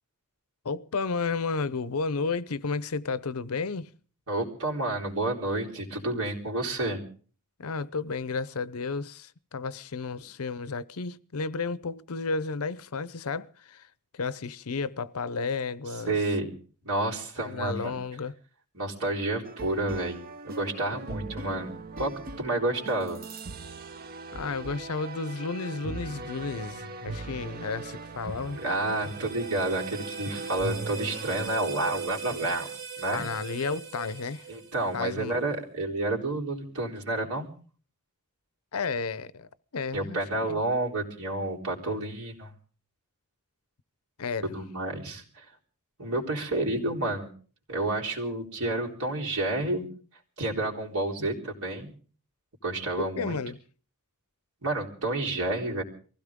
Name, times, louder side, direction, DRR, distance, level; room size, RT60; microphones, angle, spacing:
voice 1, 0.6-3.9 7.6-13.9 14.1-16.2 17.4-18.3 24.3-28.6 33.1-34.5 34.9-35.4 38.7-40.6 44.2-44.5 53.0-53.6, left 4 dB, 75° left, 0.7 m, -32 dB
voice 2, 4.3-7.0 16.1-16.5 16.8-17.9 18.7-22.1 22.4-23.2 28.6-32.7 33.0-33.3 34.5-37.5 39.9-42.5 44.4-45.4 46.0-47.3 47.7-49.9 50.4-51.9 52.6-53.4 54.6-55.8, right 2 dB, 80° right, 3.9 m, -30 dB
sound 1, 19.4-31.5, right 3 dB, 40° right, 0.7 m, -40 dB
sound 2, 28.1-35.2, right 6 dB, 55° right, 2.0 m, -40 dB
23.5 x 16.0 x 3.7 m
head